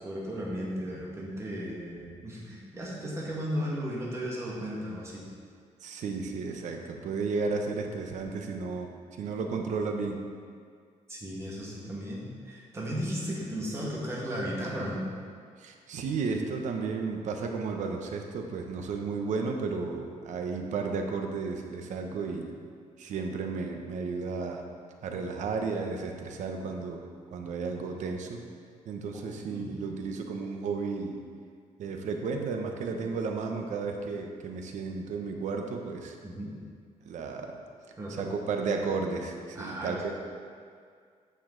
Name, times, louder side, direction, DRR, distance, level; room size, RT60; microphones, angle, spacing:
voice 1, 0.0-5.2 11.1-15.1 29.1-29.2 29.5-29.7 36.2-36.5 38.0-38.3 39.6-40.1, equal, 20° right, -5 dB, 1.8 m, -35 dB
voice 2, 5.8-10.2 15.6-22.6 23.0-24.6 25.0-27.0 27.3-28.4 28.9-31.2 31.8-36.2 37.0-37.5 38.1-40.1, right 4 dB, 70° right, 3 dB, 0.9 m, -33 dB
9.1 x 6.9 x 3.9 m, 2.1 s
cardioid pair, 160°, 13 cm